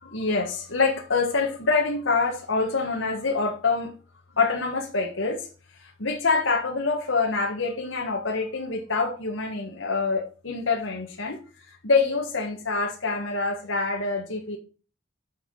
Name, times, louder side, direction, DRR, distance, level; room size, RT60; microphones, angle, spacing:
voice 1, 0.0-3.9 4.4-5.5 5.7-11.4 11.7-14.6, left 4 dB, 75° left, 1.6 m, -26 dB
9.8 x 5.8 x 6.5 m
head